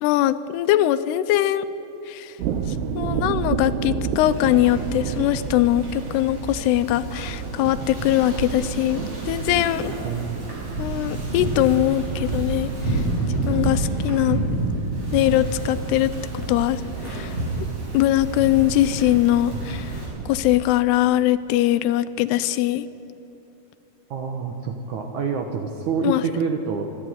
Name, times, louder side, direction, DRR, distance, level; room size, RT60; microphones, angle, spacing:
voice 1, 0.0-1.7 2.1-2.4 2.7-9.9 10.8-13.0 13.5-14.4 15.1-16.1 16.5-17.4 17.9-22.9 26.0-26.2, left 14 dB, 80° left, 13 dB, 2.6 m, -21 dB
sound 1, 2.4-20.7, right 7 dB, 80° right, 2.9 m, -32 dB
Wind / Ocean, 4.3-20.0, right 2 dB, 35° right, 6.2 m, -30 dB
voice 2, 10.0-10.4 24.1-26.9, right 5 dB, 65° right, 4 dB, 2.0 m, -27 dB
25.5 x 11.5 x 9.2 m, 3.0 s
omnidirectional pair, 4.8 m